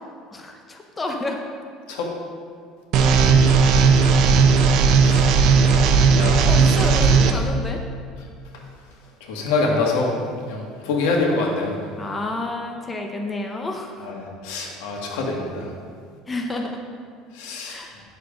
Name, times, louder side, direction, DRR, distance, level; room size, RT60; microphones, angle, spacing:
voice 1, 0.3-1.4 6.4-7.8 12.0-14.1 16.3-16.8 17.6-18.0, left 2 dB, 15° left, 2 dB, 0.7 m, -30 dB
sound 1, 2.9-7.3, right 5 dB, 50° right, 0.8 m, -16 dB
voice 2, 5.6-6.4 9.2-10.1 10.5-11.9 14.0-14.2 14.4-15.7 17.3-17.8, left 3 dB, 85° left, 0 dB, 2.0 m, -25 dB
9.5 x 6.9 x 5.2 m, 2.1 s
cardioid pair, 150°, 0 cm